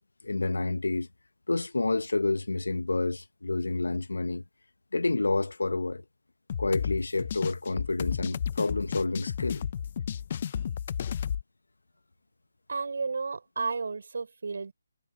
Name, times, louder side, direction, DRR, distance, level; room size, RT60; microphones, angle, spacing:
voice 1, 0.2-1.1 1.5-4.4 4.9-6.0 6.6-9.6, left 3 dB, 85° left, 1.1 m, -29 dB
sound 1, 6.5-11.4, left 8 dB, 40° left, 0.8 m, -33 dB
voice 2, 12.7-14.7, right 4 dB, 65° right, 6.6 m, -32 dB
figure-of-eight pair, 160°, 0 cm